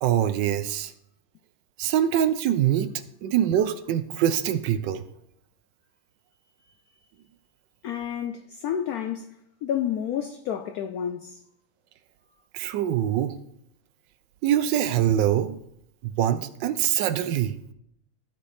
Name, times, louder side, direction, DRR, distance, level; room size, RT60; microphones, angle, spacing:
voice 1, 0.0-0.9 1.8-2.9 3.2-5.0 12.5-13.3 14.4-15.6 16.0-17.6, right 11 dB, 75° right, 1.2 m, -24 dB
voice 2, 7.8-9.3 9.6-11.4, left 9 dB, 90° left, 0.8 m, -30 dB
14.5 x 4.9 x 4.2 m
omnidirectional pair, 2.1 m